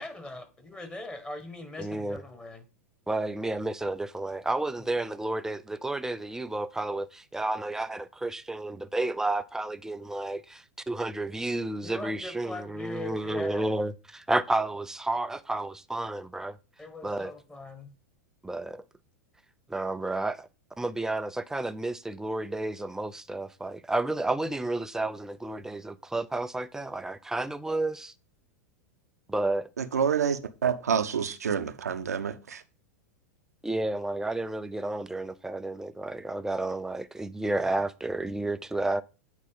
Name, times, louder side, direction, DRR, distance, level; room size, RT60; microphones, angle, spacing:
voice 1, 0.0-2.7 4.8-5.0 11.8-13.7 16.8-17.9 37.6-37.8, left 2 dB, 10° left, 1.8 m, -41 dB
voice 2, 1.8-2.2 3.1-16.6 17.0-17.3 18.4-18.8 19.7-20.5 20.8-28.1 29.3-29.7 33.6-39.0, right 2 dB, 5° right, 0.5 m, -31 dB
voice 3, 29.8-32.6, right 7 dB, 80° right, 0.8 m, -28 dB
8.6 x 4.1 x 5.3 m
figure-of-eight pair, 95°, 9 cm